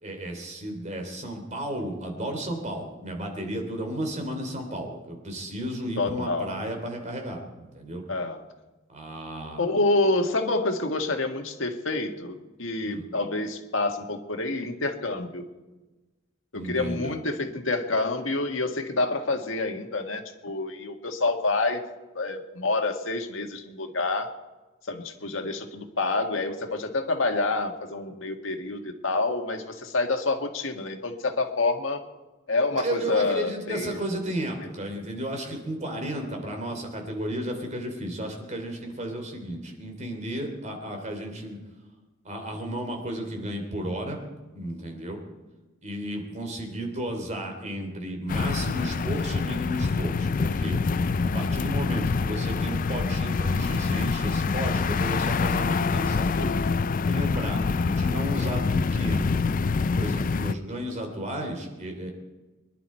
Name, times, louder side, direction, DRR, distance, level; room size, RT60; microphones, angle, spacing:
voice 1, 0.0-8.0 8.9-9.7 12.8-13.1 16.5-17.1 32.7-41.6 42.2-44.2 44.5-45.2 45.8-50.8 51.2-56.6 57.0-57.6 57.9-59.4 59.9-62.1, right 1 dB, 35° right, 4 dB, 3.1 m, -33 dB
voice 2, 6.0-6.6 8.1-8.4 9.6-15.4 16.5-21.8 22.1-24.3 24.9-32.0 32.5-34.0 51.2-51.5 57.6-58.0, left 3 dB, 80° left, 4 dB, 1.7 m, -28 dB
sound 1, 48.3-60.5, left 4 dB, 45° left, 0.4 m, -26 dB
24.0 x 11.0 x 4.5 m, 1.2 s
head